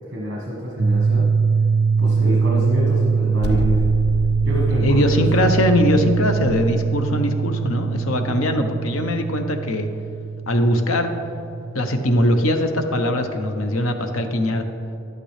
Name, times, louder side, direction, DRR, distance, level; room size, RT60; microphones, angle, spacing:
voice 1, 0.1-1.3 2.0-3.8 4.4-5.3 8.3-8.5, equal, 55° right, -3 dB, 1.2 m, -27 dB
sound 1, 0.8-12.6, right 5 dB, 70° right, 0.7 m, -22 dB
sound 2, 3.4-6.5, left 2 dB, 55° left, 0.6 m, -29 dB
voice 2, 4.7-9.9 10.5-11.1 11.7-14.6, left 1 dB, 85° left, 6 dB, 0.8 m, -21 dB
11.0 x 9.0 x 3.3 m, 2.7 s
head